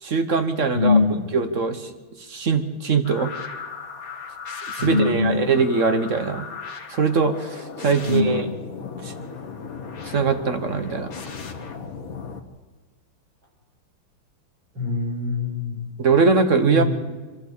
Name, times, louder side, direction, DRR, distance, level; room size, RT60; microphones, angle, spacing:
voice 1, 0.0-1.0 1.3-3.3 4.7-6.4 6.9-8.5 9.0-9.1 10.0-11.1 16.0-16.8, right 4 dB, 45° right, 9 dB, 1.2 m, -21 dB
voice 2, 0.7-1.2 4.8-5.4 8.0-8.4 14.7-15.8 16.7-16.9, left 4 dB, 65° right, 0 dB, 6.5 m, -22 dB
sound 1, 3.0-12.4, left 5 dB, 45° left, 1.6 m, -36 dB
26.0 x 12.0 x 8.3 m, 1.3 s
omnidirectional pair, 2.3 m